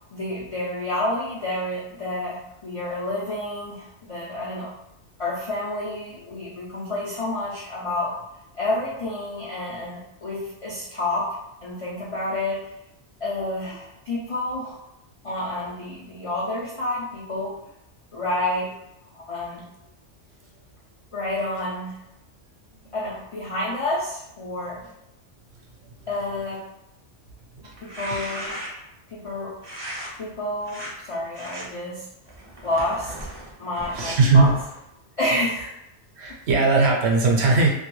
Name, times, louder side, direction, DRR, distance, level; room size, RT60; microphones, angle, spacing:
voice 1, 0.1-4.7 5.2-8.2 8.5-12.7 13.2-14.8 15.2-17.5 18.1-18.7 19.1-19.6 21.1-21.9 22.9-24.8 26.1-26.7 27.8-28.6 29.1-29.6 30.2-32.1 32.6-33.3 33.6-34.5 35.2-35.6, left 1 dB, 60° left, -7 dB, 0.3 m, -29 dB
sound 1, 27.7-28.9 29.6-30.1 30.6-30.9 31.3-31.6 32.3-34.9, right 1 dB, 30° right, 0.5 m, -37 dB
voice 2, 33.9-34.5 36.2-37.7, right 3 dB, 70° right, -1 dB, 0.9 m, -19 dB
2.3 x 2.1 x 3.0 m, 0.87 s
omnidirectional pair, 1.2 m